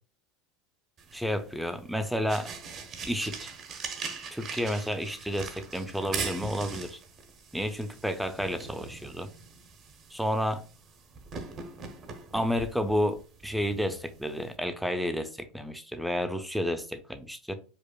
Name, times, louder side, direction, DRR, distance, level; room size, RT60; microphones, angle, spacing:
sound 1, 1.0-14.6, right 5 dB, 40° right, 0.7 m, -42 dB
voice 1, 1.1-2.5 3.0-3.5 4.3-7.0 7.5-9.3 10.1-10.6 12.3-17.6, equal, ahead, 0.4 m, -31 dB
5.0 x 2.0 x 2.3 m
supercardioid pair, 130°, 0 cm